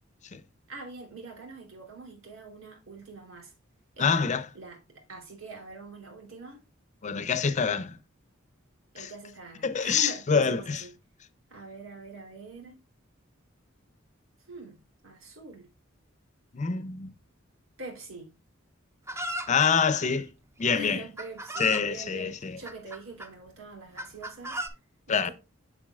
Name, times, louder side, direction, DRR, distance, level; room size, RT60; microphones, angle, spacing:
voice 1, 0.7-3.5 3.9-6.6 8.9-10.9 11.5-12.8 14.5-14.8 15.0-15.7 17.8-18.3 20.7-24.6 25.1-25.3, right 2 dB, 85° right, 3.2 m, -44 dB
voice 2, 4.0-4.4 7.0-8.0 9.0-9.1 9.6-10.8 16.5-17.1 19.5-20.3 20.6-21.0 21.6-22.6 25.1-25.3, left 6 dB, 35° left, 0.5 m, -26 dB
Chicken rooster, 19.1-19.7 20.6-20.7 21.2-21.9 22.7-23.3 24.0-24.7, right 1 dB, 15° right, 0.6 m, -36 dB
7.3 x 7.0 x 2.3 m
head